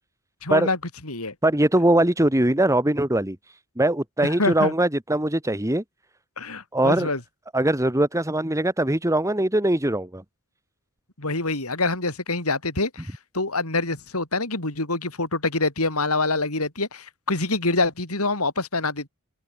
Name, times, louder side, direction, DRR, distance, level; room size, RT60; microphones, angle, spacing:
voice 1, 0.4-0.8 1.1-1.3 4.4-4.7 6.4-7.2 11.2-19.1, left 3 dB, 80° left, 6.3 m, -25 dB
voice 2, 1.4-5.8 6.7-7.1 7.5-10.2, right 1 dB, 15° right, 2.4 m, -21 dB
head